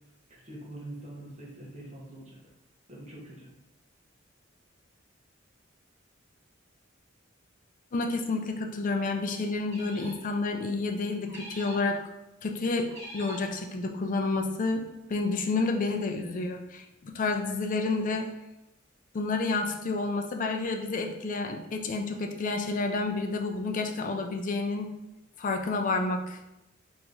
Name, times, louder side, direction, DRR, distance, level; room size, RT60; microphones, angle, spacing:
voice 1, 0.3-2.4 2.9-3.5, right 1 dB, 35° right, -4 dB, 1.0 m, -44 dB
voice 2, 7.9-12.0 12.4-14.8 15.1-18.3 19.1-24.9 25.4-26.4, left 3 dB, 40° left, 3 dB, 0.4 m, -30 dB
sound 1, 9.7-10.3 11.3-11.9 12.9-13.6, equal, 15° right, 1.4 m, -45 dB
3.6 x 2.9 x 2.5 m, 0.92 s
head